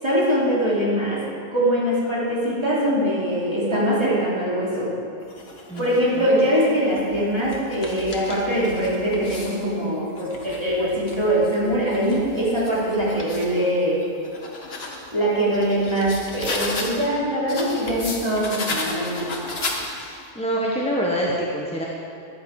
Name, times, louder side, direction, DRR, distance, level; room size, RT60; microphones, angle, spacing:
voice 1, 0.0-4.9 5.8-14.1 15.1-19.3, equal, 20° right, -7 dB, 2.9 m, -22 dB
sound 1, 5.2-6.0 6.7-9.6 10.1-13.5 14.0-17.1 17.5-20.2, left 2 dB, 55° left, 1.6 m, -34 dB
voice 2, 20.0-21.8, equal, 5° left, -4 dB, 1.1 m, -25 dB
13.5 x 11.0 x 4.8 m, 2.4 s
omnidirectional pair, 1.2 m